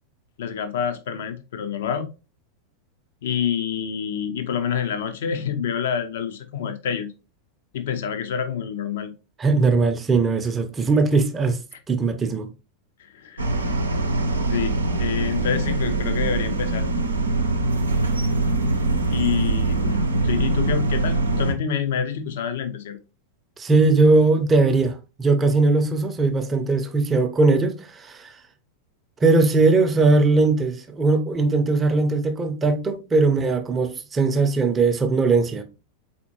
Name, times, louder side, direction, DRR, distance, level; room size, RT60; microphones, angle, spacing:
voice 1, 0.4-2.1 3.2-7.1 7.7-9.1 13.0-13.5 14.5-16.9 19.1-23.0, left 7 dB, 55° left, 0.7 m, -27 dB
voice 2, 9.4-11.6 11.9-12.5 23.6-28.3 29.2-35.6, right 3 dB, 20° right, 0.7 m, -19 dB
sound 1, 13.4-21.5, right 2 dB, 75° right, 0.6 m, -23 dB
4.2 x 4.2 x 2.9 m
figure-of-eight pair, 90°, 0 cm